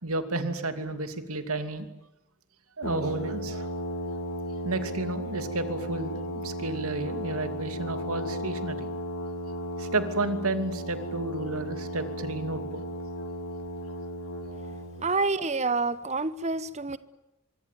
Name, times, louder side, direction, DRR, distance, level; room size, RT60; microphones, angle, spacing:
voice 1, 0.0-1.9 2.8-3.7 4.6-8.9 9.8-12.8, right 2 dB, 80° right, 2.7 m, -31 dB
Brass instrument, 2.8-15.1, equal, 70° left, 5.9 m, -35 dB
voice 2, 15.0-17.0, right 3 dB, 30° right, 1.0 m, -28 dB
24.5 x 24.5 x 9.3 m
head